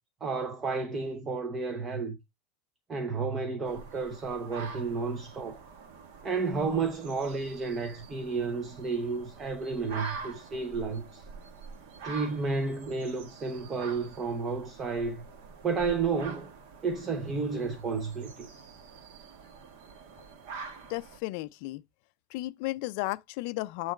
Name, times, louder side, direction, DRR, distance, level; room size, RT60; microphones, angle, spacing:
voice 1, 0.2-2.2 2.9-5.6 6.2-11.3 12.0-15.2 15.6-16.5 16.8-18.5, right 4 dB, 15° right, 0.7 m, -32 dB
sound 1, 3.6-21.2, right 4 dB, 55° right, 1.5 m, -46 dB
voice 2, 20.9-21.8 22.3-23.9, left 20 dB, 50° left, 0.4 m, -34 dB
8.8 x 3.0 x 5.0 m
supercardioid pair, 180°, 0 cm